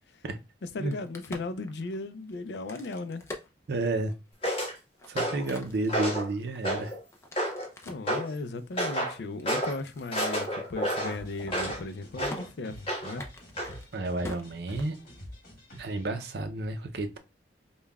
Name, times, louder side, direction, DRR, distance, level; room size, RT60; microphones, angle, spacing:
voice 1, 0.6-3.3 7.8-13.2, left 3 dB, 70° left, 0.4 m, -36 dB
Crack, 0.8-4.3 4.8-8.1 8.7-10.1 10.4-10.5 10.8-11.2 11.4-12.0 12.3-12.4 13.1-15.3, left 2 dB, 15° left, 0.5 m, -45 dB
voice 2, 3.7-4.1 5.1-6.9 13.9-15.0 15.8-17.2, right 2 dB, 65° right, 0.5 m, -31 dB
sound 1, 4.4-4.7 5.2-5.5 5.9-6.3 6.6-7.0 7.4-7.7 8.1-8.3 8.8-9.1 9.4-9.8 10.1-11.8 12.2-12.4 12.9-13.2 13.6-13.7, equal, 35° left, 1.5 m, -30 dB
sound 2, 11.0-16.3, equal, 50° left, 1.8 m, -48 dB
5.2 x 2.2 x 2.3 m
head